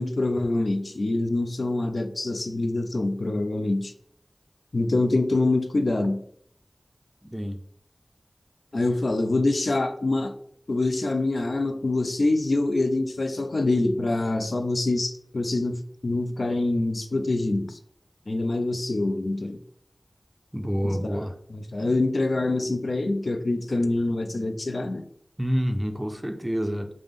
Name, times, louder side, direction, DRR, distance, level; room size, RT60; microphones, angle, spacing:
voice 1, 0.0-3.9 4.7-6.2 8.7-10.3 10.7-17.8 18.3-19.6 20.8-21.2 21.5-25.0, left 2 dB, 80° left, 7 dB, 0.4 m, -25 dB
voice 2, 7.2-7.6 20.5-21.3 25.4-26.9, equal, 15° right, 6 dB, 0.4 m, -27 dB
5.0 x 2.0 x 3.5 m, 0.66 s
wide cardioid pair, 50°, 0 cm